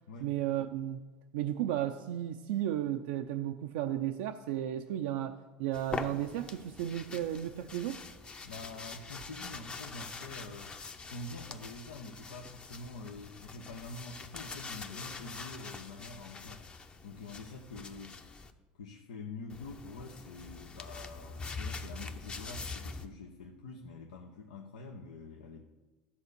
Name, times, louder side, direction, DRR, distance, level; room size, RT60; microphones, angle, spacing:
voice 1, 0.2-1.0 1.3-8.0, right 12 dB, 75° right, 0.4 m, -34 dB
sound 1, 5.7-18.5 19.5-23.1, left 4 dB, 25° left, 0.8 m, -44 dB
voice 2, 8.4-10.7 11.0-16.6 17.0-18.2 18.7-25.6, left 3 dB, 85° left, 0.8 m, -46 dB
13.0 x 4.3 x 6.6 m
hypercardioid pair, 85°, 4 cm